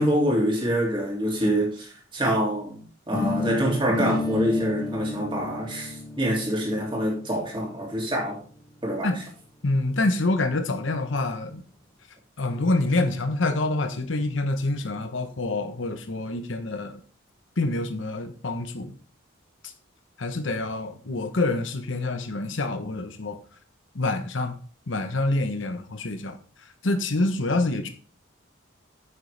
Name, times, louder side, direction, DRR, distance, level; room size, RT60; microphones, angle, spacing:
voice 1, 0.0-2.8 3.1-8.4 8.8-9.1, equal, 25° right, -2 dB, 2.7 m, -25 dB
sound 1, 3.1-9.0, left 3 dB, 15° left, 0.9 m, -32 dB
voice 2, 9.6-11.6 12.4-17.0 17.6-18.9 19.6-19.7 20.2-23.4 23.9-24.5 24.9-26.4 26.8-27.9, left 2 dB, 65° left, 8 dB, 0.9 m, -26 dB
8.9 x 6.7 x 3.3 m, 0.43 s
head